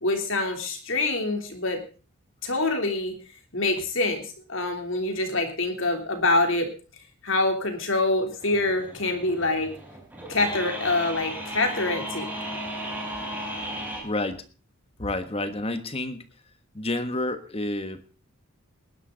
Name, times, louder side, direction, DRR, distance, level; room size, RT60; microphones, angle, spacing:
voice 1, 0.0-1.8 2.4-3.1 3.5-6.7 7.2-9.7 10.3-12.3, left 2 dB, 60° left, 4 dB, 3.2 m, -25 dB
sound 1, 8.4-14.0, right 1 dB, 10° right, 3.7 m, -35 dB
voice 2, 14.0-14.4 15.0-16.2 16.7-18.2, left 2 dB, 25° left, 9 dB, 1.3 m, -29 dB
19.5 x 11.5 x 3.9 m, 0.35 s
head